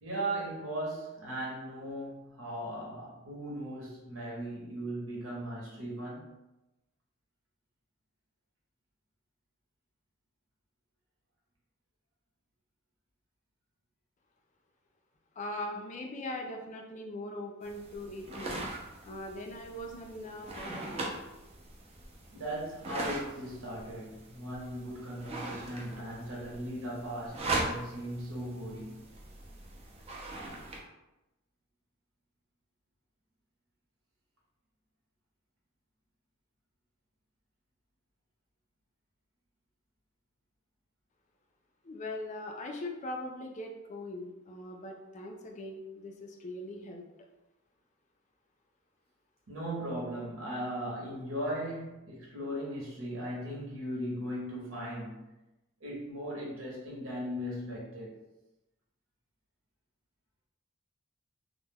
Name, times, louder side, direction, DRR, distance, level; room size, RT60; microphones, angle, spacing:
voice 1, 0.0-6.4 22.3-29.0 49.5-55.2 55.8-58.2, right 1 dB, 75° right, 0.9 m, -38 dB
voice 2, 15.4-18.7 19.0-21.1 41.8-47.0, left 1 dB, 35° left, 0.4 m, -41 dB
sound 1, 17.6-30.8, right 2 dB, 30° right, 0.4 m, -40 dB
2.2 x 2.1 x 3.3 m
head